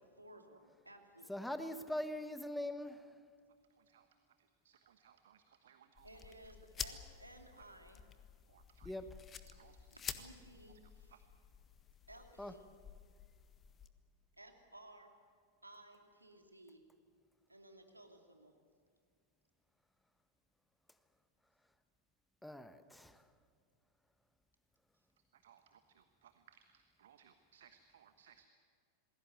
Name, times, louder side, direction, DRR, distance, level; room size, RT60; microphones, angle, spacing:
voice 1, 0.2-1.8 6.0-8.0 9.9-11.1 12.1-12.7 14.4-15.1 15.6-16.8 17.5-18.5, right 1 dB, 85° right, 4 dB, 2.7 m, -58 dB
voice 2, 1.3-3.0 8.8-9.0 12.4-12.5 22.4-23.2, left 1 dB, 5° left, 11 dB, 1.2 m, -42 dB
voice 3, 3.7-4.1 4.4-6.5 7.5-7.6 8.5-9.0 9.5-9.8 11.1-11.2 25.3-28.5, right 8 dB, 60° right, 9 dB, 1.2 m, -65 dB
sound 1, 6.0-13.9, left 7 dB, 25° left, 1.4 m, -50 dB
27.5 x 20.5 x 8.1 m, 2.1 s
figure-of-eight pair, 90°, 0 cm